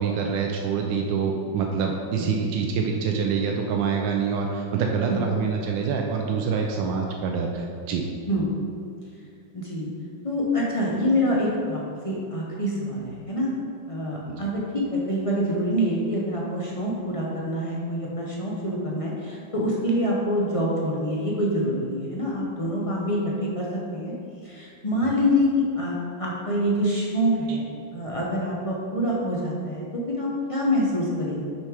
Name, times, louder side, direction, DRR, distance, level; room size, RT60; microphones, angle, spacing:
voice 1, 0.0-8.1 14.3-14.5 25.0-25.1 27.5-27.6, right 5 dB, 75° right, 1 dB, 1.3 m, -26 dB
voice 2, 9.5-9.9 10.2-13.5 13.9-23.7 23.9-24.1 24.4-27.6 27.9-31.4, equal, 35° left, -4 dB, 0.5 m, -26 dB
6.2 x 5.7 x 4.9 m, 2.4 s
omnidirectional pair, 2.1 m